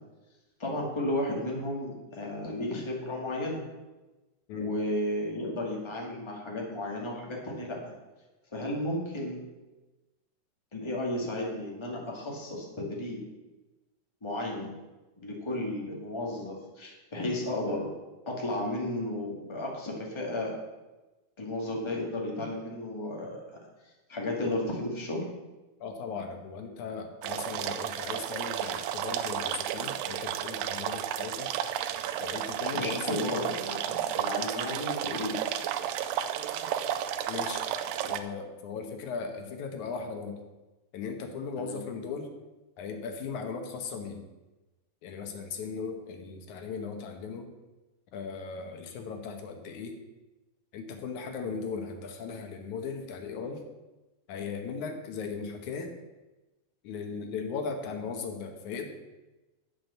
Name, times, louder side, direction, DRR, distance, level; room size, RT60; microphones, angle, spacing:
voice 1, 0.6-3.6 4.5-7.8 8.5-9.4 10.7-13.2 14.2-14.7 15.2-17.9 18.2-20.5 21.4-23.4 24.1-25.2 32.6-35.3 41.6-41.8, left 1 dB, 10° left, -2 dB, 1.5 m, -33 dB
voice 2, 25.8-31.5 32.2-33.2 37.3-37.7 38.1-40.4 40.9-42.3 42.8-44.3 45.0-47.5 48.1-50.0 50.7-53.6 54.3-55.9 56.8-58.9, left 5 dB, 65° left, 5 dB, 2.3 m, -37 dB
sound 1, 27.2-38.2, right 10 dB, 85° right, 2.3 m, -32 dB
8.7 x 7.4 x 7.0 m, 1.1 s
omnidirectional pair, 4.0 m